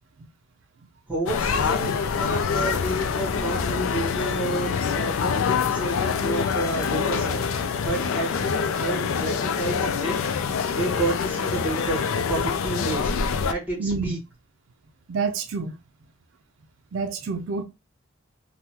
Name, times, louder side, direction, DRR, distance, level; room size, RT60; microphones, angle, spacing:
voice 1, 1.1-8.5 8.8-10.3 10.7-12.0 12.3-13.1 13.4-14.2, right 2 dB, 10° right, 1.1 m, -30 dB
sound 1, 1.3-13.5, left 6 dB, 80° left, 0.4 m, -25 dB
voice 2, 13.8-14.2 15.1-15.8 16.9-17.6, right 4 dB, 70° right, 0.4 m, -27 dB
3.4 x 2.1 x 2.9 m
head